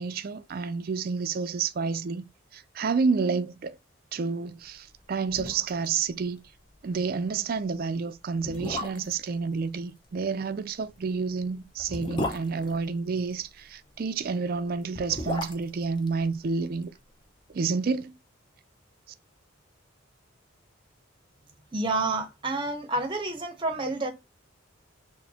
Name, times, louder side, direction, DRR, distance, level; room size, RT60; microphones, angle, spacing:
voice 1, 0.0-2.3 2.5-3.8 4.1-6.4 6.8-16.9 17.5-18.1, right 5 dB, 45° right, 0.4 m, -29 dB
sound 1, 4.9-5.0 5.3-5.9 6.2-6.3 6.7-6.9 7.6-7.7 8.3-9.3 10.8-13.5 14.7-17.0 17.2-17.3, left 1 dB, 20° left, 0.6 m, -35 dB
voice 2, 21.7-24.1, right 2 dB, 25° right, 0.7 m, -29 dB
6.1 x 2.1 x 2.8 m
head